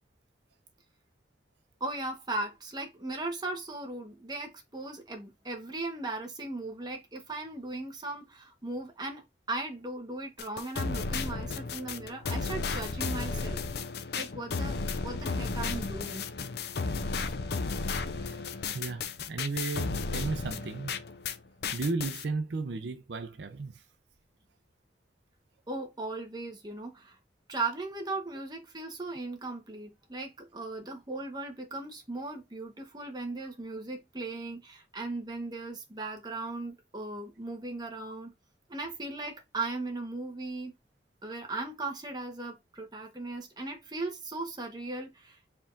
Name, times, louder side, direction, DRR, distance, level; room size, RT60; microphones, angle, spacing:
voice 1, 1.8-13.6 14.2-16.3 25.7-27.2 27.5-38.3 38.7-40.7 41.2-45.6, right 2 dB, 25° right, 1.2 m, -37 dB
sound 1, 10.4-21.4 21.6-22.2, left 4 dB, 65° left, 0.6 m, -34 dB
voice 2, 18.2-20.9 21.7-23.8, right 3 dB, 80° right, 0.6 m, -35 dB
4.6 x 3.5 x 2.5 m
head